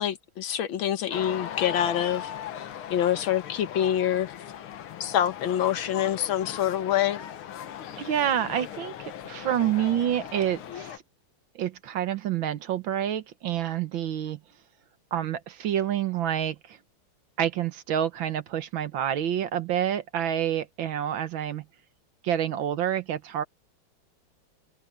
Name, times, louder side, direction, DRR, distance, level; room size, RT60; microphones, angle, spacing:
voice 1, 0.0-2.3 2.9-4.3 5.0-7.2, left 10 dB, 70° left, 1.8 m, -26 dB
sound 1, 1.1-11.0, left 10 dB, 90° left, 2.0 m, -38 dB
voice 2, 8.0-11.0 11.6-14.4 15.1-16.8 17.4-21.7 22.2-23.4, right 10 dB, 70° right, 1.7 m, -28 dB
omnidirectional pair, 2.3 m